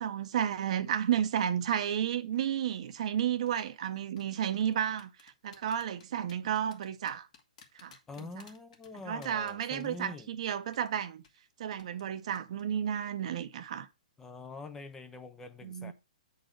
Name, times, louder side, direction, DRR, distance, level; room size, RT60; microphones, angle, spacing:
voice 1, 0.0-7.3 7.7-7.9 8.2-8.3 9.1-11.2 11.6-13.9 15.6-15.9, right 9 dB, 55° right, 0.7 m, -32 dB
sound 1, 3.2-3.5 4.2-10.4 10.7-10.9 11.2-11.4 11.8-12.1 12.3-12.6 12.9-13.1, left 6 dB, 60° left, 1.6 m, -57 dB
voice 2, 8.1-10.3 14.2-15.9, left 3 dB, 10° left, 0.5 m, -45 dB
7.7 x 4.0 x 5.0 m
hypercardioid pair, 150°, 4 cm